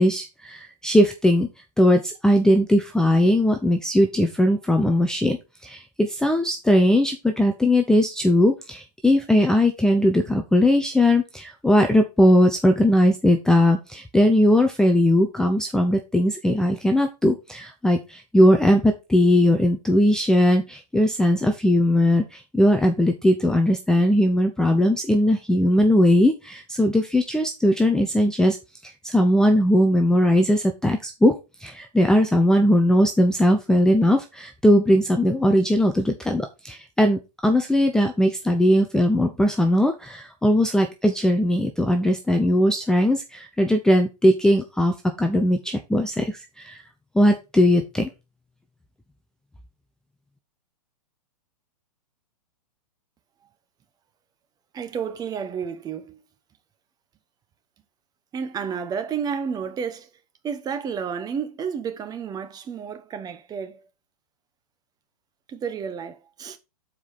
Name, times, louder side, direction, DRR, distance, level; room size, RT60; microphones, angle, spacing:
voice 1, 0.0-1.5 1.8-5.4 5.6-28.6 28.8-31.3 31.6-46.8 47.1-48.1, equal, 5° left, 0.6 m, -19 dB
voice 2, 54.7-56.2 58.3-60.1 60.4-63.8 65.5-66.6, right 7 dB, 20° right, 1.0 m, -31 dB
7.1 x 4.7 x 4.1 m
hypercardioid pair, 125°, 20 cm